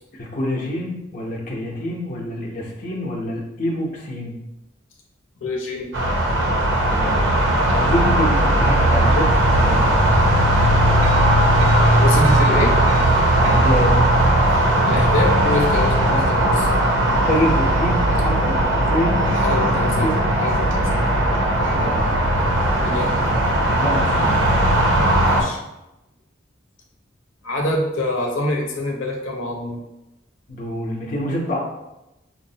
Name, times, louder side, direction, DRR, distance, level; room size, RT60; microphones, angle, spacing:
voice 1, 0.2-4.4 6.9-7.4 7.7-9.9 13.3-14.0 16.1-16.2 17.0-19.2 20.0-20.1 21.7-22.0 23.7-24.4 30.5-31.6, left 1 dB, 45° left, -2 dB, 0.6 m, -26 dB
voice 2, 5.4-5.9 12.0-12.7 14.8-16.8 19.3-20.1 20.4-21.0 22.8-23.1 25.2-25.6 27.4-29.8, left 2 dB, 85° left, 0 dB, 0.8 m, -25 dB
sound 1, 5.9-25.4, right 1 dB, 80° right, 0.7 m, -17 dB
5.7 x 2.0 x 2.7 m, 0.93 s
head